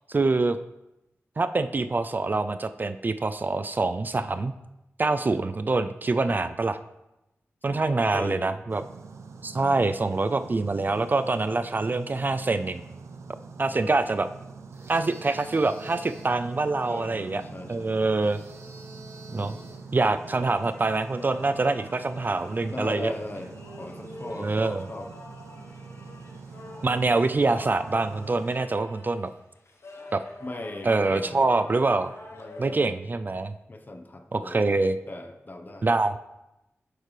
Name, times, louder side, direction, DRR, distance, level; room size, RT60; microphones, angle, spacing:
voice 1, 0.1-0.6 1.4-4.5 5.0-6.8 7.6-8.8 9.4-12.8 13.6-14.3 14.9-17.4 17.7-18.4 19.3-19.6 19.9-23.1 24.4-24.9 26.8-29.3 30.1-30.2 30.8-32.1 32.6-33.5 34.3-35.0 35.8-36.2, right 3 dB, 40° right, 11 dB, 0.4 m, -25 dB
voice 2, 7.7-8.5 9.5-9.9 16.8-18.0 19.3-19.8 20.4-20.5 22.7-25.1 30.4-31.7 32.3-32.9 33.7-34.7 35.1-35.9, left 2 dB, 40° left, 5 dB, 0.9 m, -39 dB
sound 1, 8.7-28.6, right 4 dB, 80° right, 0.6 m, -45 dB
sound 2, 14.7-16.4 18.2-19.9, right 2 dB, 60° right, 1.3 m, -47 dB
sound 3, 20.4-32.9, left 2 dB, 65° left, 1.1 m, -46 dB
8.6 x 6.5 x 3.3 m, 0.92 s
cardioid pair, 60°, 5 cm